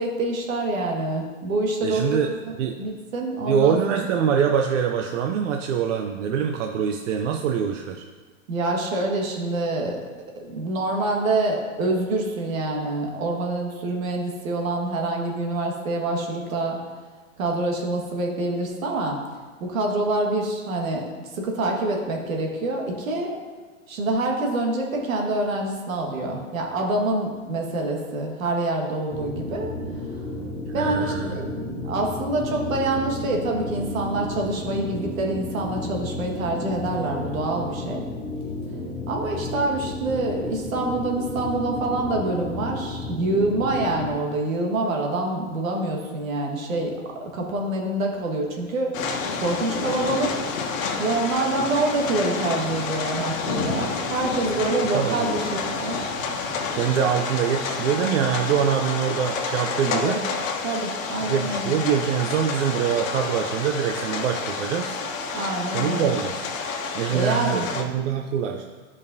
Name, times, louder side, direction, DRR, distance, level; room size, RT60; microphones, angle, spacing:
voice 1, 0.0-2.3 2.8-3.8 8.5-10.0 10.5-16.8 17.4-19.2 19.6-23.4 23.9-29.7 30.7-31.5 31.8-38.1 39.1-48.9 49.4-50.4 51.0-56.0 59.8-60.2 60.6-61.7 65.3-66.1 66.8-66.9 67.1-67.7, right 2 dB, 80° right, 1 dB, 1.7 m, -26 dB
voice 2, 1.8-2.3 2.6-2.8 3.4-8.0 30.6-31.9 54.9-55.4 56.7-60.2 61.3-65.0 65.7-66.5 66.9-68.6, right 8 dB, 65° right, 3 dB, 0.6 m, -24 dB
sound 1, 29.1-44.1, left 2 dB, 5° left, 0.5 m, -32 dB
sound 2, 48.9-67.8, left 4 dB, 70° left, 1.2 m, -29 dB
12.0 x 5.4 x 2.7 m, 1.4 s
hypercardioid pair, 145°, 40 cm